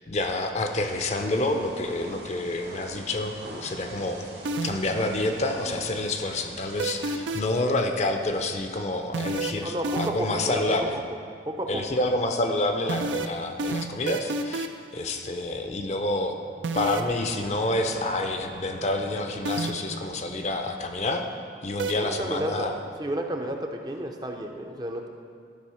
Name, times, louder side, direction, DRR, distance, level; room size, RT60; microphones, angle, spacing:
voice 1, 0.1-3.3 3.6-4.3 4.6-11.0 11.7-14.7 14.9-16.4 16.7-21.2 21.6-22.8, left 2 dB, 40° left, 5 dB, 0.5 m, -28 dB
Thunder / Rain, 0.6-7.5, right 1 dB, 75° right, 1.4 m, -43 dB
sound 1, 4.4-5.0 6.8-7.6 9.1-10.4 12.9-14.9 16.6-17.1 19.4-20.0 21.8-21.9, right 2 dB, 90° right, 0.5 m, -29 dB
voice 2, 9.6-11.0 11.5-12.0 22.0-22.7 23.0-25.1, right 1 dB, 20° right, 3 dB, 0.5 m, -32 dB
sound 2, 16.2-21.4, left 1 dB, 85° left, 2.0 m, -46 dB
11.5 x 4.1 x 5.6 m, 2.1 s
head